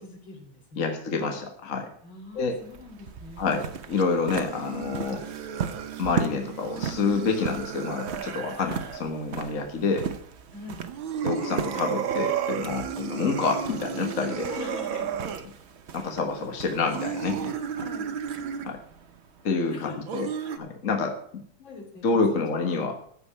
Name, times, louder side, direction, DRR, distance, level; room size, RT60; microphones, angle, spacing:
voice 1, 0.0-0.9 2.0-3.5 5.1-5.2 10.5-10.8 14.4-15.2 16.0-16.1 17.8-18.1 19.7-20.9 21.6-22.0 22.3-22.5, left 4 dB, 75° left, 0 dB, 4.2 m, -43 dB
voice 2, 0.8-1.9 2.4-2.6 3.4-5.2 6.0-10.1 11.2-14.5 15.9-17.5 18.6-18.8 19.4-20.3 20.6-21.1 22.0-23.0, left 4 dB, 45° left, 3 dB, 1.6 m, -28 dB
sound 1, 2.3-19.9, right 7 dB, 55° right, 0.7 m, -38 dB
sound 2, 4.2-9.0 10.8-15.5 16.8-18.8 20.1-20.6, right 8 dB, 80° right, 1.8 m, -33 dB
14.5 x 5.3 x 8.4 m, 0.63 s
omnidirectional pair, 2.2 m